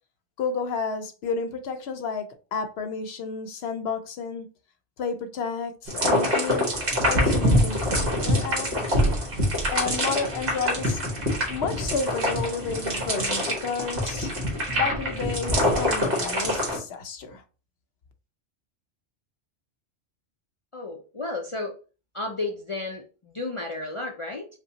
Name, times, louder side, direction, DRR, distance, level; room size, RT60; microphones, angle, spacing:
voice 1, 0.4-4.5 5.0-6.7 7.0-8.7 9.7-11.0 11.5-14.3 14.7-17.4, left 5 dB, 70° left, 0.8 m, -31 dB
sound 1, 5.9-16.8, equal, 55° right, 1.6 m, -25 dB
voice 2, 20.7-21.8 22.1-24.5, left 2 dB, 40° left, 0.4 m, -33 dB
5.1 x 2.3 x 2.8 m
omnidirectional pair, 1.2 m